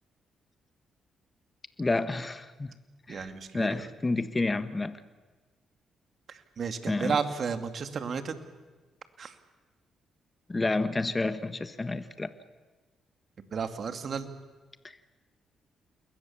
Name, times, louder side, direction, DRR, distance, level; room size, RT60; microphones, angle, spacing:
voice 1, 1.8-2.7 3.1-5.0 6.9-7.2 10.5-12.3, left 3 dB, 25° left, 12 dB, 1.5 m, -30 dB
voice 2, 3.1-3.8 6.3-8.4 9.2-9.3 13.5-14.3, right 6 dB, 55° right, 9 dB, 2.5 m, -33 dB
29.0 x 21.5 x 7.3 m, 1.3 s
hypercardioid pair, 50°, 0 cm